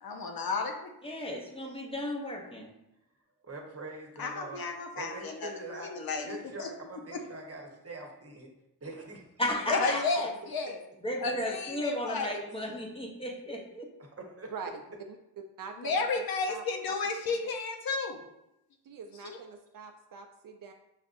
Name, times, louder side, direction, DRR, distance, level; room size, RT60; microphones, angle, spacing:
voice 1, 0.0-0.7 4.2-6.7 7.1-7.2 9.7-10.8 11.2-12.4 15.8-18.2 19.2-19.4, left 4 dB, 60° left, 3 dB, 0.7 m, -32 dB
voice 2, 1.0-2.7 9.4-10.3 11.0-13.8, left 1 dB, 15° left, 0 dB, 0.9 m, -34 dB
voice 3, 3.4-4.7 5.0-8.5 8.8-9.3 14.0-14.5, right 2 dB, 35° right, 1 dB, 1.0 m, -43 dB
voice 4, 15.6-17.0 17.3-17.4 18.8-20.7, right 6 dB, 50° right, 4 dB, 0.5 m, -44 dB
5.6 x 2.5 x 2.5 m, 0.86 s
supercardioid pair, 45°, 42 cm